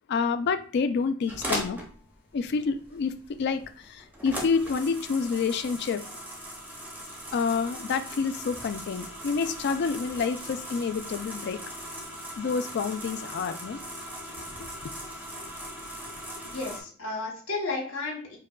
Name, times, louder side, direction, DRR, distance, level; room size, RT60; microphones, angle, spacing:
voice 1, 0.1-1.8 2.3-6.0 7.3-11.6 12.4-13.8 14.6-14.7, left 5 dB, 55° left, 0.3 m, -28 dB
sound 1, 1.3-16.8, equal, 10° right, 0.6 m, -39 dB
voice 2, 16.4-18.4, left 3 dB, 70° left, 1.0 m, -33 dB
4.6 x 2.2 x 2.3 m
head